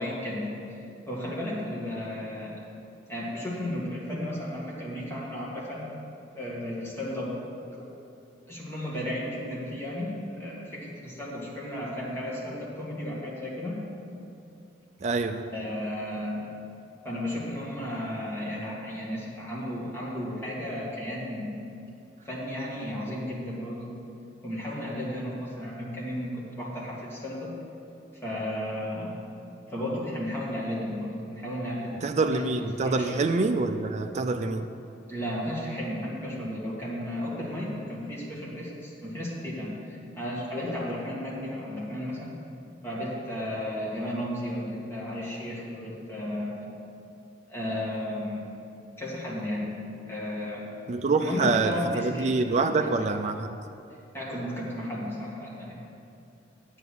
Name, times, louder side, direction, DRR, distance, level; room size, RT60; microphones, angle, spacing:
voice 1, 0.0-2.6 3.1-6.0 6.3-7.3 7.8-7.9 8.5-13.9 15.5-16.5 17.0-21.6 22.2-23.9 24.4-27.5 28.2-29.1 29.7-32.4 32.8-33.2 35.1-42.3 42.8-46.7 47.5-48.4 49.0-49.8 50.1-50.7 51.2-52.9 54.1-55.8, left 1 dB, 15° left, -6 dB, 2.1 m, -34 dB
voice 2, 15.0-15.4 32.0-34.7 50.9-53.5, right 3 dB, 40° right, 6 dB, 0.4 m, -26 dB
9.2 x 5.4 x 7.8 m, 2.6 s
head